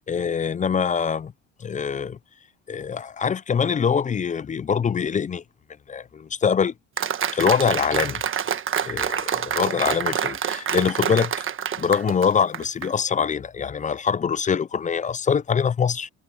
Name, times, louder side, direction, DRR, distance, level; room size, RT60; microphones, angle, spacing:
voice 1, 0.1-1.3 1.6-2.2 2.7-5.4 5.9-6.7 7.3-8.2 8.8-11.3 11.8-16.1, left 6 dB, 25° left, 0.5 m, -24 dB
Applause, 7.0-12.9, right 8 dB, 40° right, 1.4 m, -27 dB
supercardioid pair, 90°, 32 cm